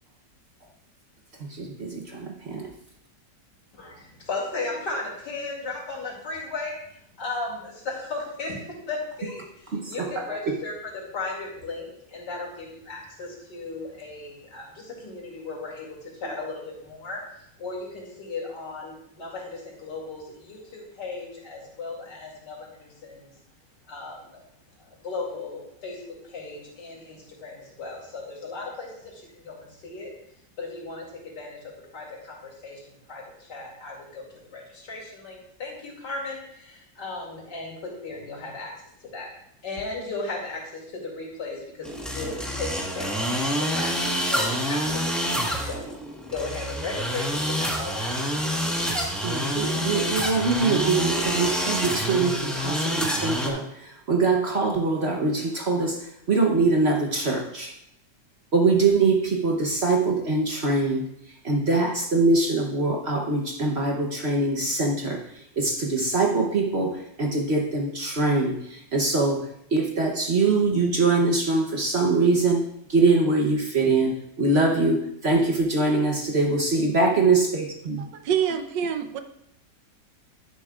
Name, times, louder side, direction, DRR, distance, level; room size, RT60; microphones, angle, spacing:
voice 1, 1.4-2.7 9.7-10.1 10.5-10.6 16.2-16.4 49.2-57.7 58.5-61.1 61.4-78.1, right 3 dB, 45° right, 1 dB, 1.0 m, -23 dB
voice 2, 3.7-17.2 17.6-23.3 23.9-24.4 24.8-30.1 30.6-31.1 31.3-31.6 31.9-38.7 39.1-39.3 39.6-45.8 46.3-48.7, left 3 dB, 75° left, -3 dB, 3.1 m, -36 dB
sound 1, 41.8-53.5, equal, ahead, 1.1 m, -27 dB
voice 3, 78.2-79.2, right 8 dB, 85° right, 8 dB, 1.4 m, -25 dB
11.0 x 10.5 x 2.4 m, 0.76 s
omnidirectional pair, 1.9 m